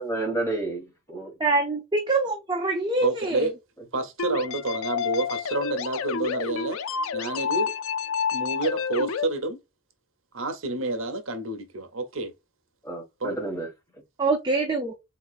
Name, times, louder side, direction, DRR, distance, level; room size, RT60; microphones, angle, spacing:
voice 1, 0.0-1.3 12.8-13.7, right 2 dB, 15° left, 1.7 m, -30 dB
voice 2, 1.4-3.5 14.2-15.0, right 3 dB, 20° right, 0.6 m, -25 dB
voice 3, 3.0-3.5 3.9-6.8 7.1-7.7 8.3-9.6 10.3-12.3 13.2-13.4, right 2 dB, 70° right, 0.8 m, -29 dB
sound 1, 4.2-9.3, left 6 dB, 85° left, 0.4 m, -29 dB
3.8 x 3.0 x 2.4 m
head